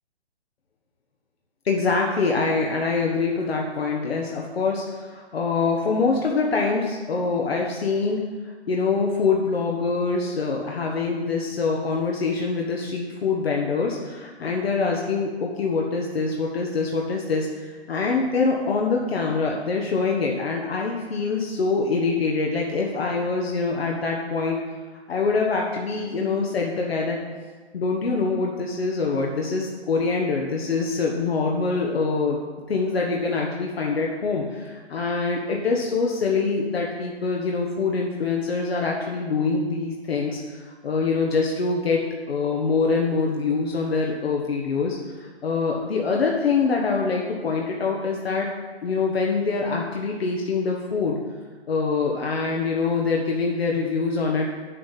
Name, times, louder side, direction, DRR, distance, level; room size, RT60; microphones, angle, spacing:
voice 1, 1.6-24.5 25.1-27.2 27.7-32.4 32.7-48.5 48.8-51.2 51.7-54.5, left 4 dB, 65° left, -1 dB, 1.4 m, -24 dB
8.3 x 7.5 x 5.7 m, 1.4 s
hypercardioid pair, 155°, 33 cm